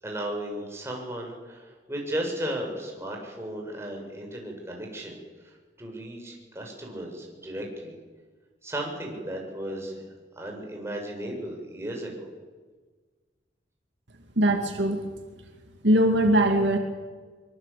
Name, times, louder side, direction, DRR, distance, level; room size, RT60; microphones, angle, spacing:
voice 1, 0.0-5.2 5.8-7.9 8.6-12.3, right 1 dB, 15° right, 0 dB, 6.7 m, -35 dB
voice 2, 14.4-15.0 15.8-16.8, right 1 dB, 70° right, 4 dB, 2.5 m, -21 dB
24.0 x 23.5 x 8.6 m, 1.4 s
head